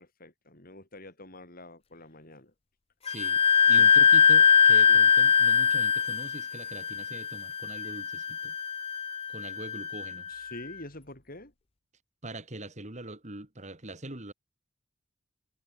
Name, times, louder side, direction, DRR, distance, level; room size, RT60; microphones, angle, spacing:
voice 1, 0.0-2.5 3.8-3.9 4.9-5.0 10.3-11.5, left 1 dB, 45° left, 7.6 m, -46 dB
voice 2, 3.0-8.6 9.3-10.3 12.2-14.3, right 1 dB, 35° right, 3.0 m, -42 dB
Wind instrument woodwind instrument, 3.1-10.5, left 6 dB, 30° left, 0.5 m, -22 dB
head